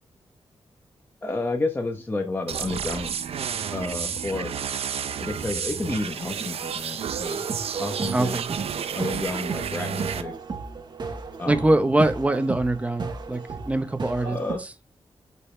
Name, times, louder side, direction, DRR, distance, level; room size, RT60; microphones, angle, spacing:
voice 1, 1.2-3.2 3.7-4.6 5.2-7.5 7.8-8.4 8.9-10.3 11.4-11.8 14.2-14.6, left 2 dB, 20° left, 1.0 m, -31 dB
sound 1, 2.5-10.2, right 7 dB, 80° right, 0.6 m, -31 dB
sound 2, 7.1-14.5, right 4 dB, 50° right, 1.2 m, -35 dB
voice 2, 8.1-8.5 11.5-14.4, right 2 dB, 15° right, 0.9 m, -23 dB
11.5 x 4.2 x 3.3 m
wide cardioid pair, 145°, 10 cm